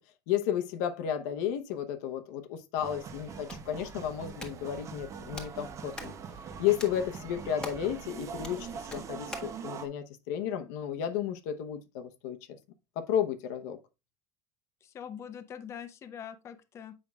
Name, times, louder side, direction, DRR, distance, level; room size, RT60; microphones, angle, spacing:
voice 1, 0.3-6.1 6.6-12.4 13.0-13.8, left 10 dB, 90° left, 0.8 m, -32 dB
sound 1, 2.8-9.9, right 6 dB, 35° right, 0.7 m, -43 dB
Hands, 3.1-9.6, left 1 dB, 10° left, 1.2 m, -47 dB
voice 2, 14.8-16.9, left 8 dB, 30° left, 0.6 m, -43 dB
7.5 x 5.4 x 2.3 m
cardioid pair, 140°, 9 cm